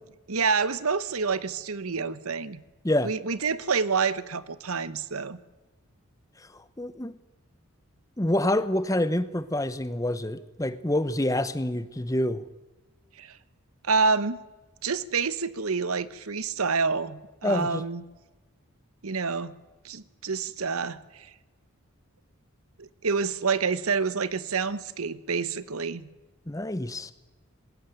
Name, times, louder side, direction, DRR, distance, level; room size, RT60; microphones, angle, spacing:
voice 1, 0.3-2.6 3.0-5.4 13.2-13.4 13.8-14.4 14.8-18.0 19.0-19.5 19.8-21.3 22.8-26.1, right 5 dB, 80° right, 16 dB, 1.0 m, -28 dB
voice 2, 6.5-7.1 8.2-12.4 17.4-17.8 26.5-27.1, left 1 dB, 15° left, 15 dB, 0.8 m, -27 dB
20.0 x 17.0 x 9.2 m, 1.2 s
head